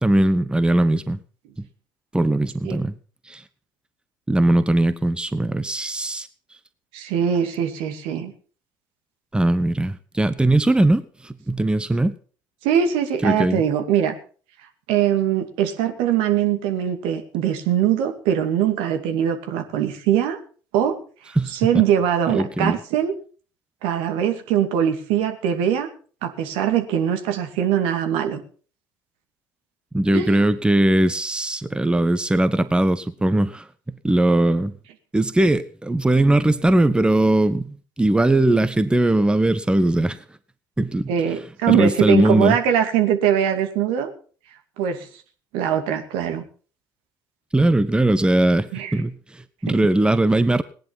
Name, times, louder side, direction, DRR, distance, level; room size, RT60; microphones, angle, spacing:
voice 1, 0.0-1.2 2.1-2.9 3.3-3.4 4.3-6.3 9.3-12.1 13.2-13.6 21.4-21.8 22.3-22.8 29.9-33.7 34.0-34.7 35.1-40.2 40.8-41.1 41.7-42.6 47.5-50.6, right 1 dB, 10° right, 13 dB, 1.1 m, -19 dB
voice 2, 6.9-8.3 12.6-14.2 14.9-20.4 20.7-21.0 21.5-23.1 23.8-25.9 26.2-28.4 30.1-30.4 41.1-44.1 44.8-45.1 45.5-46.4 48.7-48.9 49.7-49.8, right 9 dB, 70° right, 6 dB, 2.4 m, -22 dB
18.5 x 10.5 x 5.7 m, 0.42 s
hypercardioid pair, 60°, 10 cm